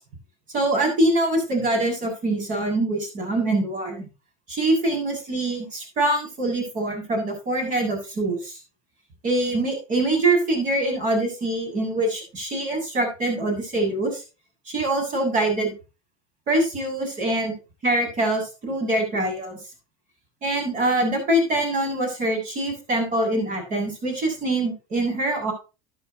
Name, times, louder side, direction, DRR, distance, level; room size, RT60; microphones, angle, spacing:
voice 1, 0.5-4.1 4.5-8.6 9.2-14.2 14.7-15.7 16.5-17.6 17.8-19.6 20.4-25.5, right 1 dB, 50° right, 3 dB, 7.0 m, -24 dB
12.5 x 10.5 x 3.0 m, 0.30 s
supercardioid pair, 120°, 17 cm